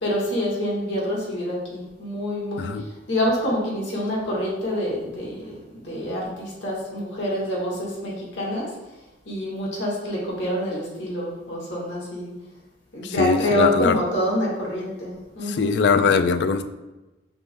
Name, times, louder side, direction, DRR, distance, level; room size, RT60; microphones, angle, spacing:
voice 1, 0.0-8.7 9.2-12.3 12.9-15.7, equal, 85° left, -4 dB, 1.5 m, -27 dB
voice 2, 13.0-14.0 15.5-16.6, left 5 dB, 70° left, 10 dB, 0.3 m, -21 dB
5.1 x 3.0 x 3.4 m, 1.0 s
head